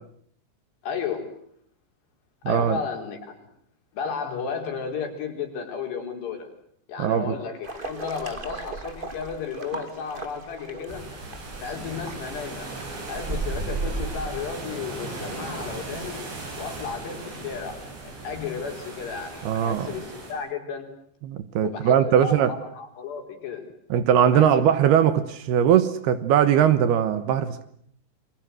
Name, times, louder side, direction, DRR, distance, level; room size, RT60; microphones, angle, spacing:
voice 1, 0.8-1.3 2.5-3.4 3.9-6.5 6.9-11.0 11.6-12.7 13.1-16.3 16.6-17.8 18.2-20.9 21.6-23.6 24.3-24.7, left 6 dB, 65° left, 5.8 m, -33 dB
voice 2, 2.4-2.8 7.0-7.3 19.4-19.9 21.2-22.5 23.9-27.6, right 9 dB, 70° right, 3.0 m, -20 dB
sound 1, 7.6-14.5, right 3 dB, 30° right, 0.9 m, -35 dB
sound 2, 10.9-20.3, right 2 dB, 90° right, 9.8 m, -37 dB
29.5 x 22.5 x 7.9 m
omnidirectional pair, 5.2 m